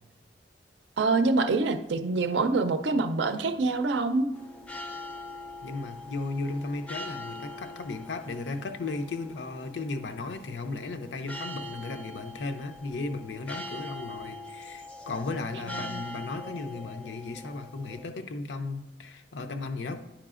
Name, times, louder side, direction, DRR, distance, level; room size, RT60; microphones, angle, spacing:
voice 1, 1.0-4.3 15.8-16.0, right 3 dB, 75° right, 9 dB, 0.5 m, -25 dB
sound 1, 4.3-18.0, left 1 dB, 5° left, 0.4 m, -43 dB
voice 2, 5.6-20.0, left 3 dB, 80° left, 8 dB, 0.5 m, -35 dB
10.0 x 4.8 x 2.4 m, 1.1 s
head